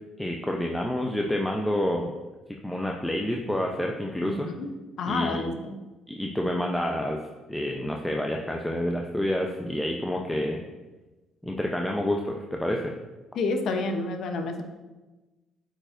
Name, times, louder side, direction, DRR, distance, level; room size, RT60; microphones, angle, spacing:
voice 1, 0.2-2.1 2.6-4.5 5.0-5.5 6.1-7.2 7.5-10.6 11.4-12.9, left 1 dB, 5° left, 1 dB, 0.6 m, -28 dB
voice 2, 4.2-4.7 5.0-5.8 13.4-14.6, left 3 dB, 65° left, 5 dB, 0.8 m, -29 dB
8.6 x 5.0 x 2.6 m, 1.2 s
supercardioid pair, 65°, 0 cm